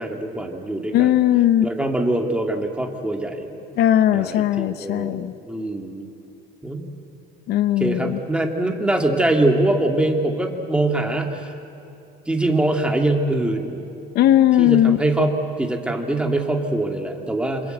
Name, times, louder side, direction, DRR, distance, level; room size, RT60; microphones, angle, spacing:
voice 1, 0.0-1.2 1.6-3.6 4.1-6.1 6.6-6.9 7.8-11.5 12.3-13.8 14.6-17.7, right 2 dB, 5° right, 3 dB, 2.4 m, -23 dB
voice 2, 0.9-1.7 3.8-5.3 7.5-8.2 14.1-15.0, left 12 dB, 60° left, 12 dB, 0.9 m, -18 dB
27.5 x 27.0 x 8.0 m, 2.8 s
cardioid pair, 140°, 18 cm